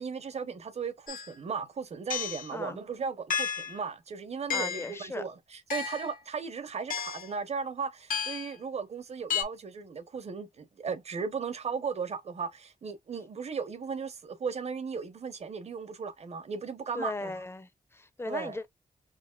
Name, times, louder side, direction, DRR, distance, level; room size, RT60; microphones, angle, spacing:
voice 1, 0.0-17.3 18.3-18.6, right 5 dB, 50° right, 0.9 m, -36 dB
sound 1, 1.1-1.3 2.1-2.5 3.3-3.8 4.5-5.0 5.7-6.2 6.9-7.3 8.1-8.5 9.3-9.4, left 7 dB, 75° left, 1.3 m, -32 dB
voice 2, 4.5-5.2 16.9-18.7, left 2 dB, 15° left, 0.7 m, -37 dB
4.1 x 2.9 x 2.3 m
cardioid pair, 80°, 14 cm